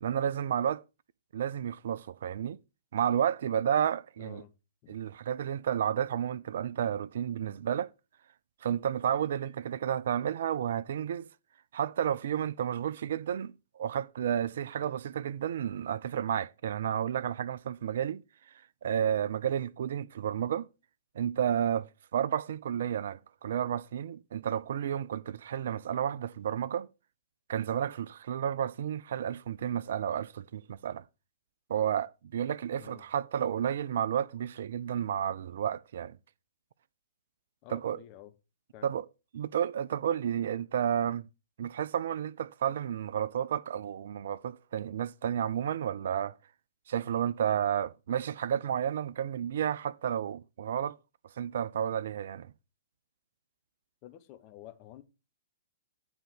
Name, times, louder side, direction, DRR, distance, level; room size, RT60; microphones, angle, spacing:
voice 1, 0.0-0.8 1.3-2.6 2.9-4.4 4.9-7.9 8.6-11.3 11.7-18.2 18.8-20.7 21.2-26.9 27.5-31.0 31.7-36.2 37.7-38.0 38.8-39.1 39.3-41.3 41.6-46.3 46.9-51.0 51.4-52.5, right 9 dB, 55° right, 0.4 m, -31 dB
voice 2, 4.2-4.5 4.8-4.9 32.7-33.0 37.6-38.3 38.7-38.9 47.7-47.8 48.2-48.3 54.0-55.0, left 13 dB, 30° left, 1.0 m, -50 dB
9.2 x 3.8 x 6.4 m
figure-of-eight pair, 115°, 0 cm